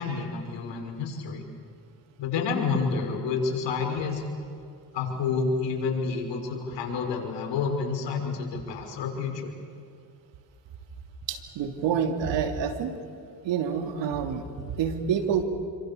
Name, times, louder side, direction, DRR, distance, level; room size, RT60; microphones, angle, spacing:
voice 1, 0.0-1.4 2.2-4.2 4.9-9.5, left 5 dB, 75° left, 2 dB, 5.9 m, -29 dB
voice 2, 11.3-13.0 13.4-15.4, right 7 dB, 80° right, 6 dB, 3.1 m, -28 dB
28.0 x 25.5 x 7.0 m, 2.4 s
cardioid pair, 85°, 44 cm